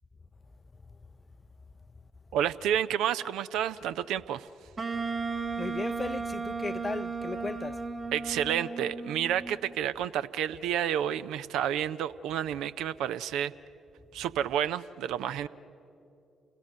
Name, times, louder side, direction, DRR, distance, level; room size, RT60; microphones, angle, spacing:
voice 1, 2.3-4.5 8.1-13.5 14.1-15.5, right 10 dB, 65° right, 0.4 m, -30 dB
Wind instrument woodwind instrument, 4.8-9.8, right 4 dB, 40° right, 1.5 m, -35 dB
voice 2, 5.6-7.8, left 3 dB, 30° left, 0.5 m, -36 dB
28.5 x 18.0 x 6.6 m
figure-of-eight pair, 40°, 0 cm